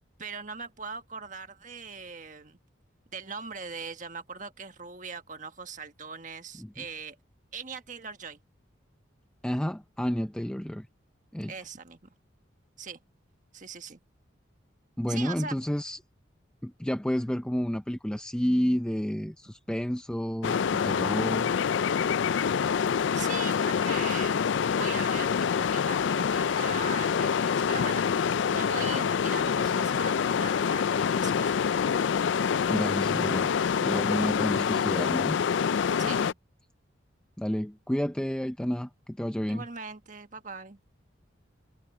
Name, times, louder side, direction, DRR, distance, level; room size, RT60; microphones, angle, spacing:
voice 1, 0.2-2.6 3.1-7.2 7.5-8.4 11.5-12.1 12.8-13.0 13.5-14.0 15.1-15.6 23.1-28.0 28.5-31.6 36.0-36.4 39.4-40.8, right 5 dB, 40° right, 1.4 m, -40 dB
voice 2, 9.4-10.9 11.3-11.5 15.0-16.0 16.6-21.5 32.7-33.5 33.8-35.4 37.4-39.6, equal, 5° left, 0.4 m, -30 dB
sound 1, 20.4-36.3, left 7 dB, 70° left, 0.4 m, -26 dB
head